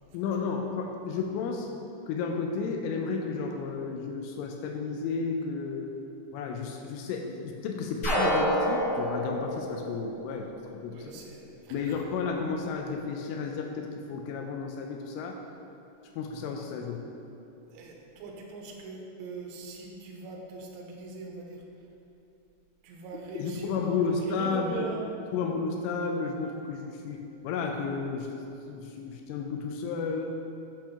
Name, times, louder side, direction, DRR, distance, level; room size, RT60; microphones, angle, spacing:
voice 1, 0.1-1.7 2.1-5.9 6.3-11.1 11.7-15.4 16.1-17.0 23.4-24.9 25.3-28.3 28.7-30.3, left 5 dB, 80° left, 3 dB, 2.9 m, -32 dB
sound 1, 8.0-10.8, equal, 55° left, 1.4 m, -28 dB
voice 2, 10.9-11.9 17.7-21.6 22.8-25.1, right 3 dB, 75° right, -1 dB, 3.3 m, -41 dB
8.8 x 5.9 x 5.7 m, 2.7 s
omnidirectional pair, 6.0 m